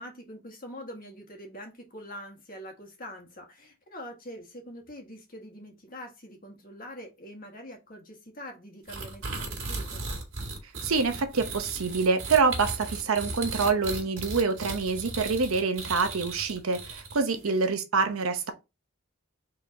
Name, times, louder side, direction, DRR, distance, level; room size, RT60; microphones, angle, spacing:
voice 1, 0.0-10.0 17.3-17.5, equal, 45° left, 1.6 m, -44 dB
sound 1, 8.9-17.4, right 3 dB, 65° right, 2.2 m, -36 dB
voice 2, 10.8-18.5, right 4 dB, 80° right, 0.8 m, -26 dB
4.8 x 3.8 x 2.8 m
head